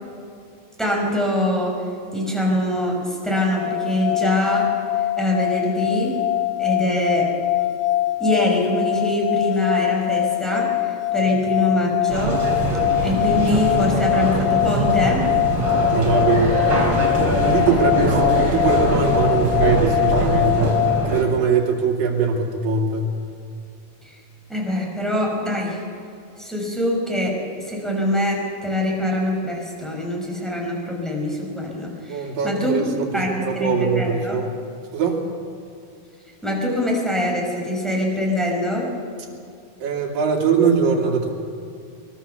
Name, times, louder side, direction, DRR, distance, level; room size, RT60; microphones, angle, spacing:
voice 1, 0.8-1.8 2.1-6.2 6.6-7.3 8.2-12.4 13.0-15.3 24.0-24.2 24.5-25.8 26.4-34.4 36.4-38.9, left 1 dB, ahead, -2 dB, 5.5 m, -24 dB
sound 1, 3.3-21.1, left 14 dB, 70° left, 1.7 m, -23 dB
sound 2, 12.1-21.2, right 1 dB, 30° right, 4.7 m, -22 dB
voice 2, 15.7-16.6 16.9-20.8 21.0-23.1 32.1-34.5 34.9-35.2 39.8-41.3, right 5 dB, 65° right, -1 dB, 4.4 m, -22 dB
24.0 x 21.5 x 7.1 m, 2.4 s
omnidirectional pair, 4.3 m